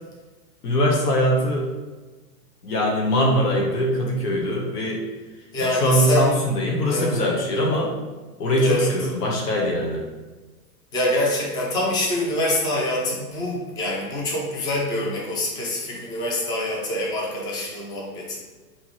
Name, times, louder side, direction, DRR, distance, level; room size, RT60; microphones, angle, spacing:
voice 1, 0.6-1.7 2.6-5.0 5.6-7.9 8.4-10.0, equal, 75° left, -1 dB, 1.1 m, -22 dB
voice 2, 5.5-6.4 6.9-7.2 8.6-8.9 10.9-18.4, left 1 dB, 10° left, -2 dB, 0.4 m, -25 dB
5.6 x 3.0 x 3.0 m, 1.3 s
hypercardioid pair, 115°, 47 cm